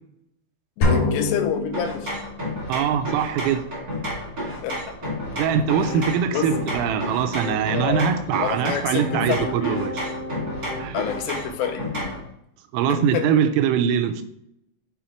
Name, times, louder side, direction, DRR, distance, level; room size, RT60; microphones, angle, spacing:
voice 1, 0.8-2.1 4.6-4.8 6.3-6.5 7.7-8.1 8.4-9.9 10.9-12.2 12.9-13.3, left 8 dB, 85° left, 5 dB, 3.2 m, -28 dB
sound 1, 0.8-2.5, left 3 dB, 60° left, 3.5 m, -24 dB
sound 2, 1.7-12.3, equal, 45° right, 1.5 m, -31 dB
voice 2, 2.7-3.6 5.4-10.0 10.8-11.0 12.7-14.2, right 8 dB, 90° right, 8 dB, 3.2 m, -22 dB
Piano, 5.0-6.1 6.5-7.6 8.3-11.5, left 2 dB, 45° left, 2.5 m, -36 dB
8.2 x 4.8 x 3.0 m, 0.77 s
omnidirectional pair, 5.8 m